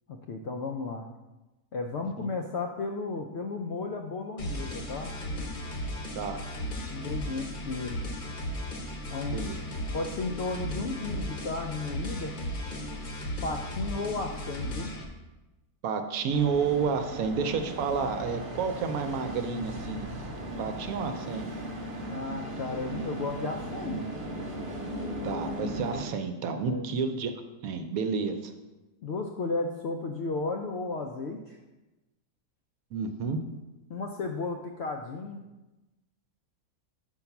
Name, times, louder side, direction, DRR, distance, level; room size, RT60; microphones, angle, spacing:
voice 1, 0.1-1.0 1.7-5.1 6.9-8.0 9.1-9.4 9.9-12.3 13.4-14.9 22.1-24.1 26.6-26.9 29.0-31.6 33.9-35.4, left 3 dB, 70° left, 3 dB, 0.6 m, -34 dB
sound 1, 4.4-15.0, equal, 40° left, 0.8 m, -36 dB
voice 2, 15.8-20.1 20.6-21.5 25.2-27.3 27.6-28.5 32.9-33.4, right 5 dB, 70° right, 7 dB, 1.0 m, -30 dB
sound 2, 16.3-26.0, right 1 dB, 35° right, 1.3 m, -37 dB
5.5 x 4.5 x 5.8 m, 1.1 s
omnidirectional pair, 1.6 m